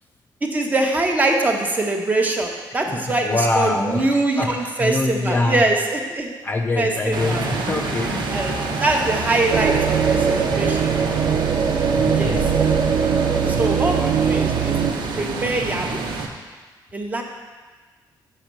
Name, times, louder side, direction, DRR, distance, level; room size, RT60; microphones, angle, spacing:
voice 1, 0.4-6.3 6.8-7.4 8.3-10.9 12.1-12.4 13.5-16.0 16.9-17.2, right 2 dB, 20° right, 2 dB, 0.9 m, -23 dB
voice 2, 2.9-5.6 6.4-8.4 11.9-12.5, left 2 dB, 20° left, 3 dB, 0.4 m, -24 dB
sound 1, 7.1-16.3, right 3 dB, 70° right, 1.1 m, -27 dB
sound 2, 9.5-14.9, right 7 dB, 40° right, 0.5 m, -20 dB
6.6 x 6.2 x 7.4 m, 1.3 s
wide cardioid pair, 180°, 8 cm